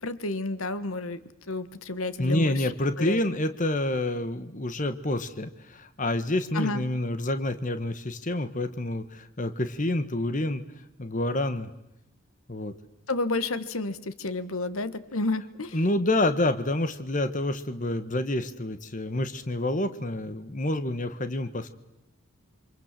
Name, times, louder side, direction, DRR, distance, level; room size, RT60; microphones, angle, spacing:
voice 1, 0.0-1.2 1.5-2.6 3.0-3.2 6.5-6.8 13.1-15.8, left 2 dB, 80° left, 13 dB, 1.5 m, -30 dB
voice 2, 2.2-10.6 11.0-11.7 12.5-12.7 15.7-21.7, left 1 dB, 35° left, 10 dB, 1.4 m, -28 dB
27.5 x 25.5 x 7.6 m, 0.88 s
head